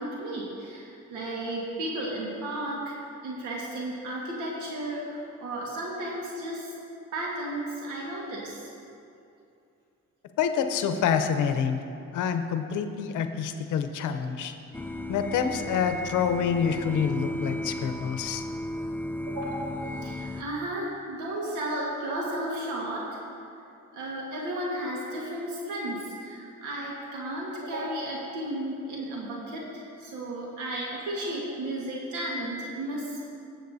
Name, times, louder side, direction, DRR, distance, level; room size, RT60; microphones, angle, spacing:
voice 1, 0.0-6.7 7.1-8.7 19.3-23.2 23.9-33.2, right 1 dB, 90° right, -4 dB, 1.6 m, -34 dB
voice 2, 10.4-11.8 12.1-14.5 15.1-18.5, left 7 dB, 80° left, 8 dB, 0.7 m, -27 dB
sound 1, 14.7-20.4, left 1 dB, 5° left, 0.4 m, -35 dB
15.0 x 7.8 x 2.7 m, 2.6 s
cardioid pair, 90°, 30 cm